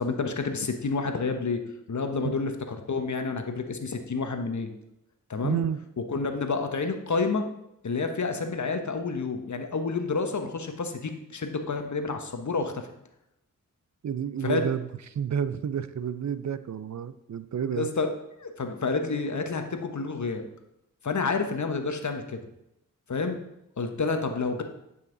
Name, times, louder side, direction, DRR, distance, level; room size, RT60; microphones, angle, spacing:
voice 1, 0.0-1.6 1.9-4.7 5.3-5.6 6.1-7.4 7.8-12.9 14.4-14.6 17.7-18.1 18.4-20.4 21.0-22.4 23.1-23.4 23.8-24.6, left 4 dB, 55° left, 6 dB, 1.2 m, -29 dB
voice 2, 5.4-5.8 14.0-17.9, right 8 dB, 55° right, 14 dB, 0.5 m, -30 dB
10.5 x 5.7 x 3.9 m, 0.83 s
cardioid pair, 45°, 34 cm